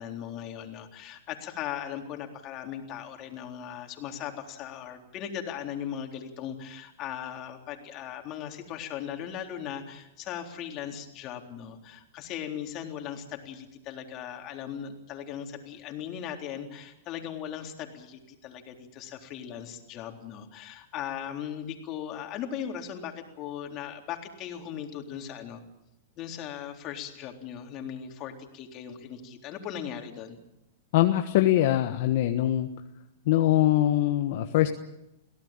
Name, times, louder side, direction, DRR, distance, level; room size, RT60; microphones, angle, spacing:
voice 1, 0.0-25.6 26.2-30.4, left 9 dB, 35° left, 3 dB, 3.8 m, -38 dB
voice 2, 30.9-32.7 33.2-34.7, left 13 dB, 60° left, 5 dB, 1.4 m, -23 dB
23.5 x 17.0 x 9.0 m, 0.85 s
hypercardioid pair, 135°, 0 cm